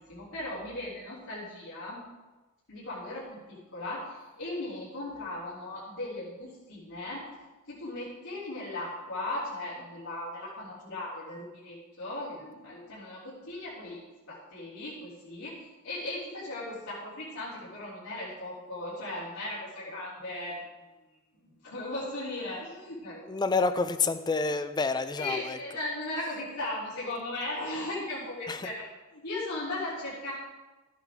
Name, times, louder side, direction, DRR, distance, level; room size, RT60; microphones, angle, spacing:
voice 1, 0.1-2.1 2.7-7.2 7.7-14.0 14.3-20.6 21.4-23.3 25.2-28.9 29.1-30.3, left 2 dB, 90° left, -11 dB, 3.7 m, -37 dB
voice 2, 23.3-25.6 28.5-28.7, left 4 dB, 20° left, 11 dB, 0.4 m, -28 dB
13.0 x 9.2 x 3.7 m, 1.2 s
head